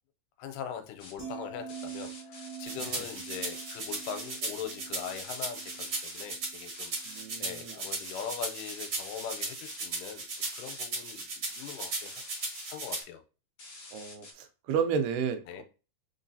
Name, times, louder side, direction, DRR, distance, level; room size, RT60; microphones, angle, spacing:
voice 1, 0.4-13.2 15.5-15.6, left 8 dB, 85° left, 8 dB, 2.2 m, -42 dB
sound 1, 1.0-1.1 1.7-4.4 4.9-6.2 6.7-7.2 7.8-9.8 10.3-10.8 11.4-13.1 13.6-14.3, left 3 dB, 45° left, 1.5 m, -48 dB
sound 2, 1.2-7.5 7.8-8.1, right 7 dB, 5° right, 1.8 m, -46 dB
sound 3, 2.7-13.0, right 3 dB, 50° right, 1.9 m, -37 dB
voice 2, 7.1-7.8 13.9-15.6, right 6 dB, 80° right, 7 dB, 2.2 m, -32 dB
4.4 x 3.9 x 2.7 m, 0.32 s
omnidirectional pair, 3.7 m